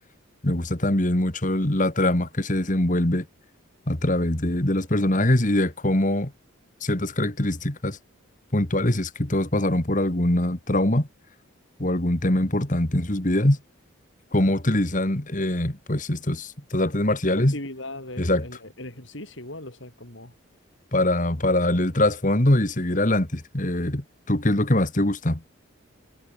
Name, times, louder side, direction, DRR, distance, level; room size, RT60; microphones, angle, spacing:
voice 1, 0.4-3.3 3.9-6.3 6.8-8.0 8.5-11.1 11.8-13.6 14.3-17.5 18.2-18.5 20.9-25.4, left 1 dB, 40° left, 2.0 m, -23 dB
voice 2, 17.4-20.3, left 1 dB, 65° left, 7.3 m, -38 dB
head